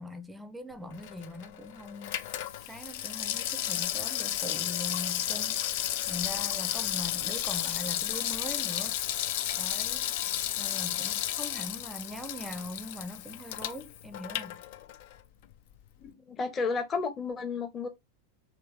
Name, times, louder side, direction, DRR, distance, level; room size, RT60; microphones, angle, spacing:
voice 1, 0.0-2.2 2.7-5.6 6.1-9.0 9.6-10.1 10.6-14.6, left 1 dB, 5° right, 0.5 m, -41 dB
Water tap faucet / Sink (filling or washing), 0.9-15.2 15.5-15.6, left 12 dB, 50° left, 0.4 m, -33 dB
voice 2, 16.0-17.9, left 4 dB, 20° left, 0.8 m, -32 dB
3.0 x 3.0 x 3.6 m
figure-of-eight pair, 90°, 0 cm